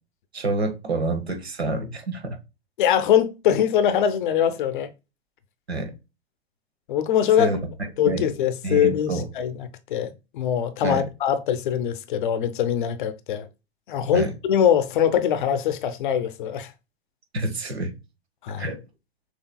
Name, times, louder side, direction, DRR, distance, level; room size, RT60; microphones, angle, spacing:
voice 1, 0.3-2.4 5.7-5.9 7.4-8.3 8.6-9.3 10.8-11.1 14.1-14.3 17.3-17.9 18.6-18.8, right 2 dB, 80° right, 1.4 m, -28 dB
voice 2, 2.8-4.9 6.9-7.5 8.0-13.5 13.9-16.7 18.4-18.7, left 9 dB, 50° left, 0.7 m, -22 dB
6.2 x 3.1 x 2.2 m
figure-of-eight pair, 105°, 31 cm